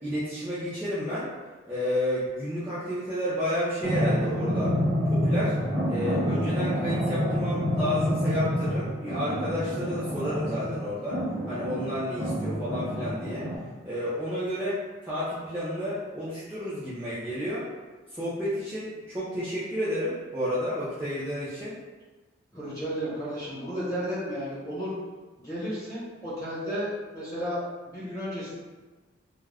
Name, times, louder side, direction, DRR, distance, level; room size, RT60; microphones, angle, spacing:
voice 1, 0.0-1.3 1.6-4.7 5.1-5.5 5.9-11.2 11.5-13.5 13.8-17.7 18.1-21.7, equal, 10° right, -13 dB, 0.5 m, -31 dB
sound 1, 3.8-13.6, equal, 45° right, 0.8 m, -28 dB
voice 2, 22.5-24.9 25.4-28.5, equal, 15° left, -9 dB, 1.1 m, -33 dB
2.3 x 2.1 x 3.3 m, 1.3 s
head